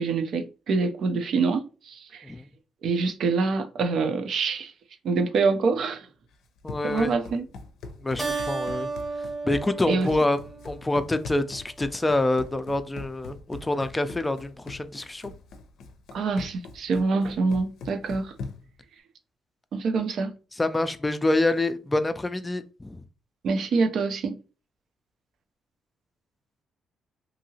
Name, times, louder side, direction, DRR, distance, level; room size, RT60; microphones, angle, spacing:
voice 1, 0.0-2.3 2.8-4.7 5.0-6.1 6.8-7.5 9.9-10.1 16.1-18.3 19.7-20.4 23.4-24.4, right 4 dB, 65° right, 0.5 m, -25 dB
Run, 6.3-18.8, left 3 dB, 75° left, 0.5 m, -42 dB
voice 2, 6.6-7.1 8.0-8.9 9.4-10.4 10.6-15.3 20.6-23.0, left 2 dB, 15° left, 0.4 m, -26 dB
Keyboard (musical), 8.2-11.1, right 3 dB, 30° right, 0.8 m, -33 dB
2.7 x 2.7 x 2.7 m
cardioid pair, 90°, 0 cm